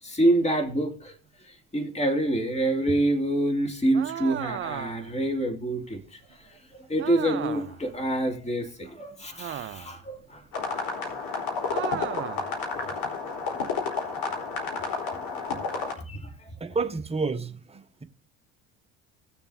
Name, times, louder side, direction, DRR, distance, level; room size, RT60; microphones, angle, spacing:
voice 1, 0.0-1.1 1.7-10.4 13.4-13.5 14.9-15.6 16.1-16.5, right 1 dB, 15° left, 2.6 m, -27 dB
sound 1, 3.9-5.2 7.0-7.8 9.4-10.0 11.7-12.5, right 11 dB, 30° right, 0.5 m, -35 dB
sound 2, 10.5-15.9, left 4 dB, 55° left, 4.2 m, -31 dB
voice 2, 16.6-18.0, right 4 dB, 15° right, 1.1 m, -30 dB
19.0 x 6.8 x 2.8 m
hypercardioid pair, 65°, 42 cm